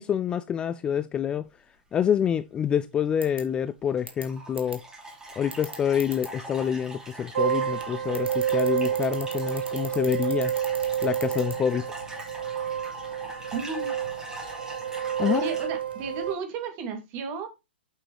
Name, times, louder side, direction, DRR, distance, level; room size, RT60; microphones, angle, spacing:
voice 1, 0.0-1.5 1.9-4.8 5.4-10.5 11.0-11.8 15.2-15.5, left 8 dB, 15° left, 0.3 m, -27 dB
sound 1, 3.2-3.4 4.1-4.2 4.6-4.8 5.5-6.3 8.1-11.5, right 2 dB, 85° right, 2.4 m, -38 dB
sound 2, 3.3-3.6 4.0-15.7, right 1 dB, 10° right, 3.0 m, -42 dB
sound 3, 7.3-16.3, right 9 dB, 60° right, 1.4 m, -29 dB
voice 2, 13.5-13.9 15.2-17.5, right 5 dB, 35° right, 2.5 m, -33 dB
8.1 x 6.0 x 3.2 m
figure-of-eight pair, 115°, 6 cm